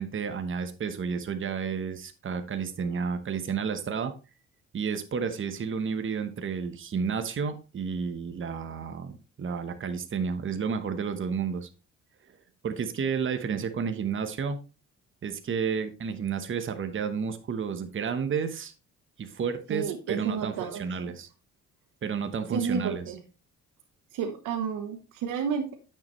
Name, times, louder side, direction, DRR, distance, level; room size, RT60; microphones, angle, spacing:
voice 1, 0.0-4.1 4.7-11.7 12.6-14.6 15.2-18.7 19.2-21.3 22.0-23.0, right 6 dB, 40° right, 8 dB, 1.1 m, -31 dB
voice 2, 19.7-21.1 22.3-23.2 24.1-25.7, right 7 dB, 85° right, 5 dB, 1.1 m, -31 dB
9.3 x 6.9 x 3.1 m, 0.32 s
cardioid pair, 90°, 30 cm